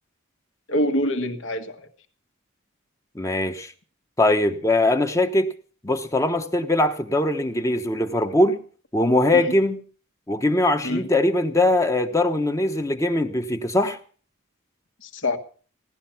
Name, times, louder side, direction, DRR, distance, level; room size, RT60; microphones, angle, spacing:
voice 1, 0.7-1.9 9.3-9.5 10.8-11.0 15.0-15.4, left 1 dB, 65° left, 1.6 m, -25 dB
voice 2, 3.1-3.7 4.2-5.5 5.8-8.6 8.9-9.8 10.3-14.0, left 1 dB, 15° left, 1.0 m, -21 dB
17.0 x 11.5 x 5.8 m
head